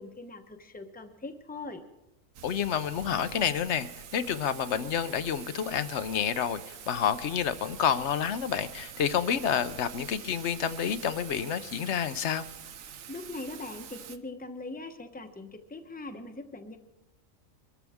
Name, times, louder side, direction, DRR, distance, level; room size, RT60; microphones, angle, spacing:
voice 1, 0.0-1.8 13.1-16.8, left 2 dB, 10° left, 6 dB, 0.8 m, -41 dB
Thunder / Rain, 2.3-14.2, right 8 dB, 90° right, 1.2 m, -46 dB
voice 2, 2.4-12.4, left 8 dB, 65° left, 13 dB, 0.9 m, -29 dB
23.5 x 13.0 x 3.6 m, 0.97 s
omnidirectional pair, 1.3 m